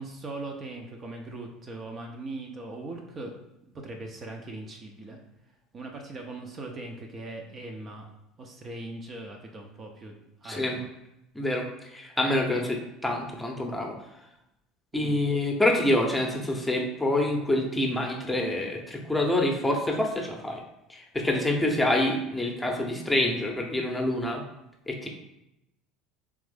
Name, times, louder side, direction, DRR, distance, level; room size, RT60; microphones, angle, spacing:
voice 1, 0.0-3.3 3.6-5.2 5.7-8.1 8.4-10.1 10.4-10.9 14.9-15.2, right 2 dB, 30° right, 2 dB, 0.6 m, -40 dB
voice 2, 10.4-10.8 11.3-13.9 14.9-20.6 20.9-24.4 24.9-25.1, left 1 dB, 10° left, 1 dB, 0.8 m, -26 dB
3.6 x 3.4 x 3.4 m, 0.87 s
figure-of-eight pair, 65°, 0 cm